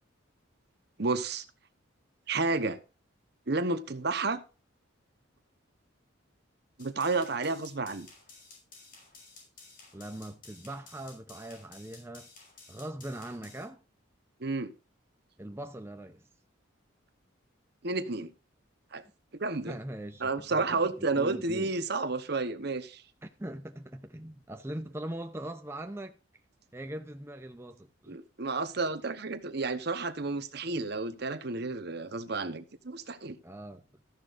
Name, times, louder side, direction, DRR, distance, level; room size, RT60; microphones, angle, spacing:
voice 1, 1.0-1.4 2.3-2.8 3.5-4.4 6.8-8.1 14.4-14.7 17.8-18.3 18.9-19.0 19.3-19.8 20.2-23.0 28.1-33.4, right 3 dB, 55° right, 1.0 m, -31 dB
sound 1, 6.8-13.6, left 3 dB, 45° left, 5.5 m, -53 dB
voice 2, 9.9-12.3 12.7-13.8 15.4-16.2 19.7-21.7 23.2-26.2 26.7-28.2 33.4-33.9, right 1 dB, 10° right, 0.6 m, -41 dB
14.0 x 10.5 x 2.6 m
head